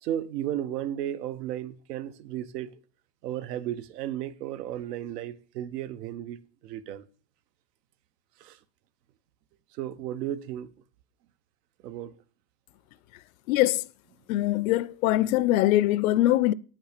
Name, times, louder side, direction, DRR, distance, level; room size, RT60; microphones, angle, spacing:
voice 1, 0.0-2.8 3.2-7.1 8.4-8.6 9.7-10.7 11.8-12.1, right 11 dB, 80° right, 1.0 m, -34 dB
voice 2, 13.5-13.8 14.3-16.5, left 15 dB, 60° left, 0.5 m, -22 dB
8.9 x 5.7 x 6.6 m
supercardioid pair, 170°, 47 cm